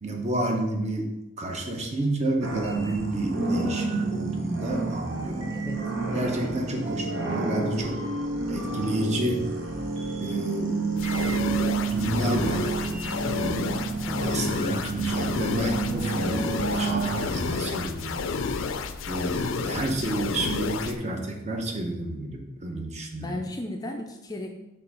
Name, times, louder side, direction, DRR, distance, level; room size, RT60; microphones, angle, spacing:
voice 1, 0.0-1.1 1.4-5.5 6.1-8.0 8.5-9.5 10.2-10.8 11.8-13.1 13.4-13.7 14.2-18.3 19.1-23.4, right 1 dB, 35° right, 2 dB, 0.9 m, -30 dB
sound 1, 2.4-17.3, right 3 dB, 70° right, 1.0 m, -29 dB
voice 2, 5.5-5.8 14.1-14.5 22.3-22.6 23.1-24.5, left 1 dB, 20° left, 3 dB, 0.4 m, -36 dB
sound 2, 11.0-21.0, left 4 dB, 75° left, 0.4 m, -31 dB
5.6 x 3.6 x 5.4 m, 0.97 s
head